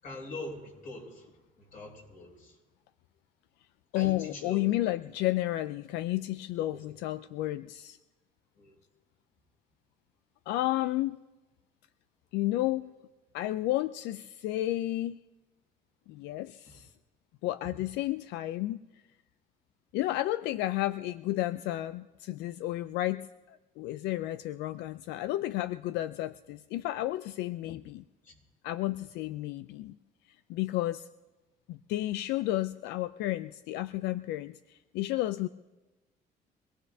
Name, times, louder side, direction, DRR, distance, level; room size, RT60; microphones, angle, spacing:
voice 1, 0.0-2.6 3.9-4.6 6.7-6.8 8.6-8.8 16.6-16.8 28.2-28.4, left 2 dB, 50° left, 0 dB, 5.7 m, -44 dB
voice 2, 3.9-8.0 10.5-11.2 12.3-12.9 13.3-15.2 16.1-16.9 17.4-18.8 19.9-28.0 28.6-29.9 30.5-31.1 31.7-35.5, left 16 dB, 90° left, 13 dB, 0.4 m, -32 dB
24.5 x 18.0 x 2.7 m, 1.1 s
cardioid pair, 110°, 17 cm